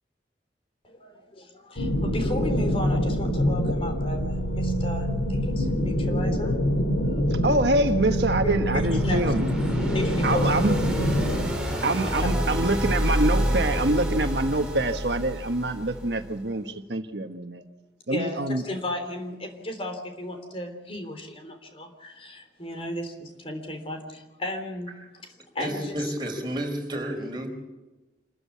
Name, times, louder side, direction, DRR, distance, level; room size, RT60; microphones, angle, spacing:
voice 1, 0.8-6.6 7.1-7.2 8.4-9.2 9.6-10.8 12.0-12.3 18.1-24.9 25.5-26.1, left 1 dB, 30° left, 5 dB, 3.5 m, -35 dB
sound 1, 1.8-11.5, equal, 85° left, 2.7 m, -25 dB
voice 2, 7.3-9.4 10.2-10.7 11.8-17.6 18.1-18.6, right 2 dB, 70° right, 7 dB, 1.3 m, -25 dB
sound 2, 7.6-16.4, equal, 5° right, 4.5 m, -29 dB
voice 3, 25.6-27.6, equal, 25° right, 2 dB, 4.7 m, -31 dB
27.5 x 14.0 x 8.5 m, 1.2 s
head